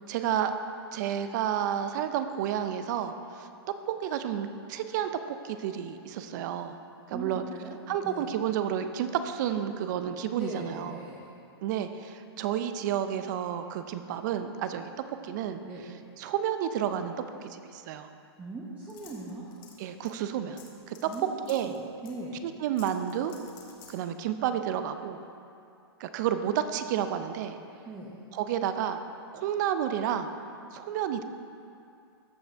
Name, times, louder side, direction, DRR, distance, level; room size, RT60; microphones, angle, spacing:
voice 1, 0.1-0.5 0.9-3.5 4.0-5.1 5.4-6.8 7.1-7.4 7.9-11.0 11.6-15.6 16.2-17.1 17.4-18.1 19.8-20.6 20.9-21.1 21.5-21.7 22.4-23.4 23.9-25.2 26.0-27.6 28.3-29.0 29.3-30.3 30.7-31.2, right 9 dB, 45° right, 9 dB, 0.5 m, -31 dB
voice 2, 7.1-7.8 8.0-8.3 10.3-11.3 15.6-15.9 18.4-19.5 21.1-22.4 27.8-28.2, right 2 dB, 10° right, -4 dB, 0.8 m, -40 dB
sound 1, 18.9-19.8 20.0-20.1 20.6-21.2 21.5-21.8 22.0-22.1 22.8-24.0, left 8 dB, 50° left, 1.4 m, -52 dB
14.0 x 5.4 x 3.4 m, 2.5 s
hypercardioid pair, 140°, 14 cm